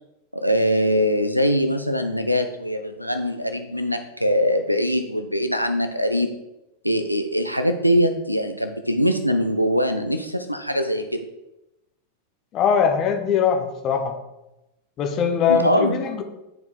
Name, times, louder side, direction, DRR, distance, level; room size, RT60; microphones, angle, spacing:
voice 1, 0.3-6.4 6.8-11.3 15.5-16.0, equal, 90° left, 6 dB, 0.4 m, -22 dB
voice 2, 12.5-14.2 15.0-16.2, left 7 dB, 35° left, 5 dB, 0.9 m, -21 dB
9.7 x 4.6 x 3.1 m, 0.93 s
figure-of-eight pair, 90°, 0 cm